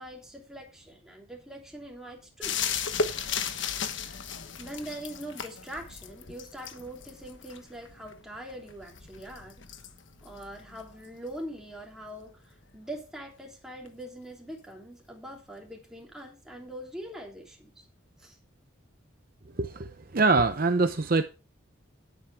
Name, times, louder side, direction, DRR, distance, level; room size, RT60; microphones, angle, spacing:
voice 1, 0.0-2.6 4.6-9.6 10.2-17.9 18.2-18.4, right 1 dB, 5° right, 3.3 m, -43 dB
sound 1, 2.4-11.8 13.9-14.0, left 6 dB, 70° left, 1.3 m, -36 dB
voice 2, 19.6-21.2, right 3 dB, 45° right, 0.8 m, -24 dB
11.5 x 10.5 x 3.6 m
head